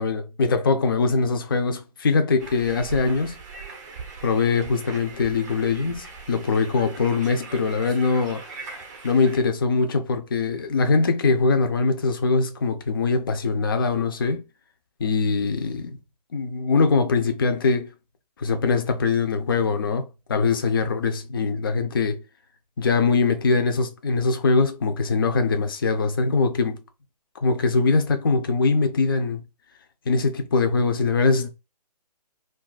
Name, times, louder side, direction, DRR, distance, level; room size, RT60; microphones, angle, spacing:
voice 1, 0.0-3.4 4.2-8.4 9.0-14.4 15.0-16.0 16.3-17.9 18.4-22.2 22.8-26.8 27.4-29.4 30.1-31.5, left 4 dB, 35° left, 0.4 m, -22 dB
sound 1, 2.4-9.4, right 4 dB, 25° right, 0.5 m, -40 dB
2.3 x 2.2 x 3.9 m
hypercardioid pair, 160°, 21 cm